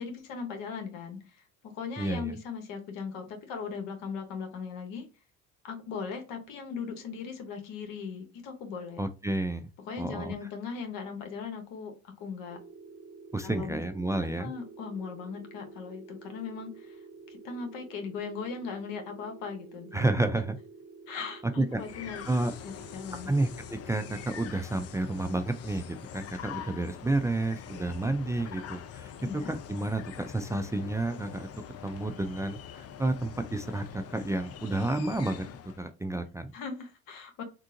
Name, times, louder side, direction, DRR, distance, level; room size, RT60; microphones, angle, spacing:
voice 1, 0.0-5.1 5.6-9.0 9.9-12.6 13.4-13.8 14.2-17.0 17.3-20.2 21.1-22.3 22.6-23.3 29.2-29.5 36.5-37.4, left 5 dB, 70° left, 5 dB, 1.2 m, -39 dB
voice 2, 2.0-2.3 9.0-9.7 10.0-10.3 13.3-14.5 19.9-20.6 21.6-21.8 22.3-22.5 23.3-23.5 23.9-31.5 31.8-35.5 35.8-36.5, right 2 dB, 10° right, 8 dB, 0.4 m, -30 dB
sound 1, 12.5-24.3, right 4 dB, 35° right, 0.7 m, -50 dB
sound 2, 21.7-35.9, left 9 dB, 45° left, 0.5 m, -44 dB
3.7 x 2.4 x 2.6 m, 0.31 s
hypercardioid pair, 70°, 34 cm